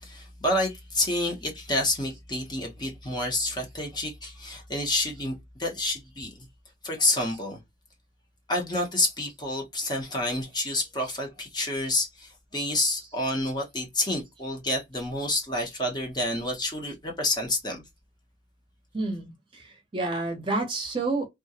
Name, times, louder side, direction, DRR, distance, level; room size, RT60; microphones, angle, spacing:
voice 1, 0.0-6.3 6.8-7.6 8.5-17.8, left 1 dB, 25° left, 0.7 m, -29 dB
voice 2, 18.9-21.3, right 3 dB, 25° right, 0.7 m, -29 dB
2.3 x 2.1 x 2.7 m
head